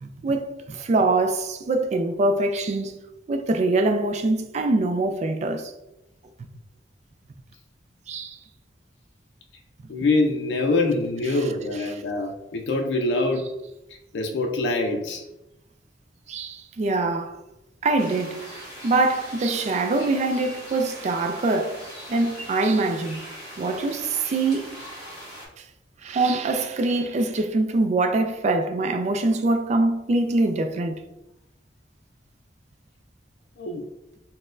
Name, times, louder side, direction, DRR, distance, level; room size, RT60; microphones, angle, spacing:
voice 1, 0.0-3.0 3.3-5.7 8.1-8.4 16.3-17.4 17.8-21.8 22.1-23.3 23.6-24.8 26.0-31.0, right 2 dB, 40° right, 0.3 m, -24 dB
voice 2, 9.9-13.5 14.1-15.2 33.6-33.9, left 2 dB, 80° left, 0.4 m, -24 dB
sound 1, 18.0-25.5, equal, 25° right, 1.1 m, -41 dB
4.0 x 2.1 x 2.5 m
head